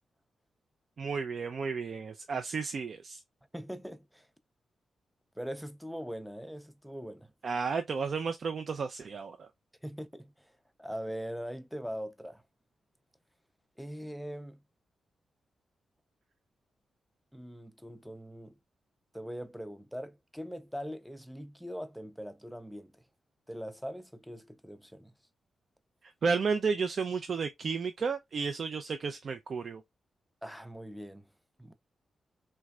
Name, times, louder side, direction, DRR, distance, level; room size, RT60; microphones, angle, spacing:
voice 1, 1.0-3.2 7.4-9.5 26.2-29.8, right 5 dB, 55° right, 0.4 m, -32 dB
voice 2, 3.5-4.3 5.4-7.3 9.8-10.5 10.8-12.4 13.8-14.6 17.3-18.6 19.1-23.0 23.5-25.1 30.4-31.3 31.6-31.7, equal, ahead, 0.5 m, -41 dB
3.3 x 3.1 x 2.3 m
cardioid pair, 110°, 0 cm